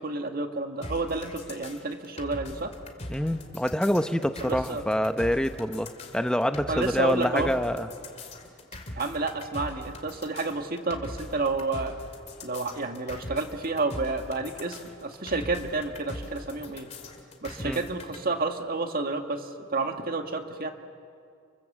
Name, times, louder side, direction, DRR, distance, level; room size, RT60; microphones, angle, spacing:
voice 1, 0.0-2.7 4.4-4.8 6.7-7.5 8.9-11.9 12.4-16.9 17.4-20.7, right 3 dB, 50° right, 5 dB, 1.8 m, -30 dB
sound 1, 0.8-18.2, left 1 dB, 35° left, 2.5 m, -41 dB
voice 2, 3.1-7.9 17.6-17.8, equal, 5° left, 9 dB, 0.8 m, -26 dB
29.0 x 23.0 x 7.4 m, 2.3 s
head